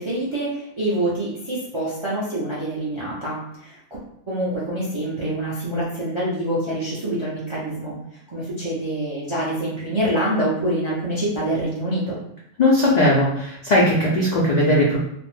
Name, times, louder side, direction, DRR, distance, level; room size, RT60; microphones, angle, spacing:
voice 1, 0.0-3.8 4.3-7.9 8.3-12.2, right 1 dB, 45° right, -7 dB, 0.3 m, -26 dB
voice 2, 12.6-15.0, left 1 dB, 85° left, -6 dB, 0.3 m, -18 dB
2.5 x 2.0 x 3.1 m, 0.75 s
omnidirectional pair, 1.4 m